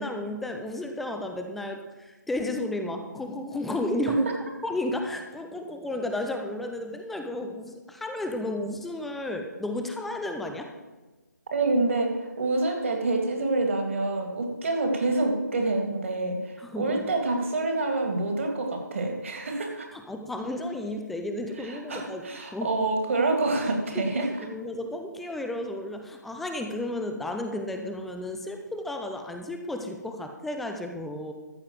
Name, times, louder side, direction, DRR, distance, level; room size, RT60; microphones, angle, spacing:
voice 1, 0.0-4.3 4.6-10.7 16.6-17.1 19.9-22.2 22.5-22.7 24.0-31.3, left 1 dB, ahead, 4 dB, 0.4 m, -33 dB
voice 2, 11.5-19.9 21.6-24.5, right 2 dB, 45° right, 3 dB, 2.4 m, -27 dB
13.5 x 5.7 x 7.6 m, 1.2 s
figure-of-eight pair, 150°, 10 cm